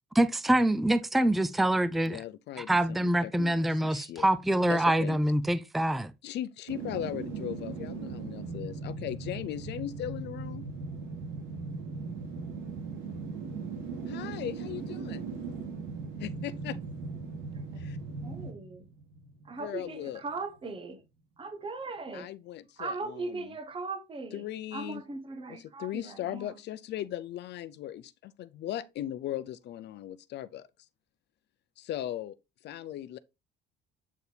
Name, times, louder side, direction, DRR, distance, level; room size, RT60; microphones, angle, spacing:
voice 1, 0.1-2.2 2.6-6.1, right 1 dB, ahead, 0.4 m, -25 dB
voice 2, 2.0-4.3 4.7-5.2 6.2-10.7 14.1-15.2 16.2-16.8 17.7-18.0 19.6-20.2 22.1-23.5 24.3-25.0 25.5-30.7 31.8-32.3 32.6-33.2, left 12 dB, 60° left, 0.6 m, -38 dB
sound 1, 6.7-19.7 20.1-20.2, right 4 dB, 90° right, 2.8 m, -38 dB
voice 3, 17.5-17.9 18.2-18.9 19.4-21.0 21.4-22.3 22.8-24.4 24.7-26.6, right 3 dB, 25° right, 1.2 m, -39 dB
8.2 x 4.5 x 3.3 m
cardioid pair, 110°, 20 cm